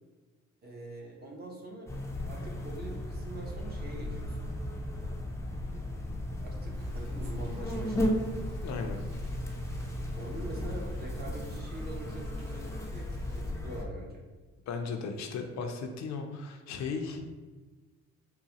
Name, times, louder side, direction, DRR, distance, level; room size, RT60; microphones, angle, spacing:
voice 1, 0.6-4.5 5.7-8.1 10.1-13.1 13.3-14.2, right 1 dB, 30° right, -1 dB, 0.8 m, -44 dB
sound 1, 1.9-13.8, left 1 dB, 10° left, 0.4 m, -35 dB
Rain, 6.7-13.4, right 1 dB, 85° right, 1.1 m, -46 dB
voice 2, 8.6-9.2 14.7-17.2, left 4 dB, 65° left, 4 dB, 0.5 m, -36 dB
3.9 x 2.1 x 2.8 m, 1.3 s
cardioid pair, 90°, 30 cm